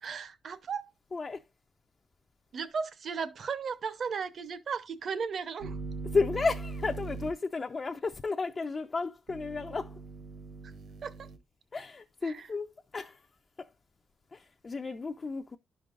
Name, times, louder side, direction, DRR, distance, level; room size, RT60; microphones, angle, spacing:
voice 1, 0.0-0.9 2.5-5.8 11.0-11.3 12.2-12.5, right 6 dB, 45° right, 0.8 m, -36 dB
voice 2, 1.1-1.4 6.0-10.0 11.7-13.3 13.6-13.7 14.3-15.6, left 4 dB, 25° left, 0.4 m, -33 dB
sound 1, 5.6-7.3 9.3-11.4, right 3 dB, 75° right, 1.8 m, -40 dB
11.5 x 5.2 x 2.5 m
wide cardioid pair, 165°, 0 cm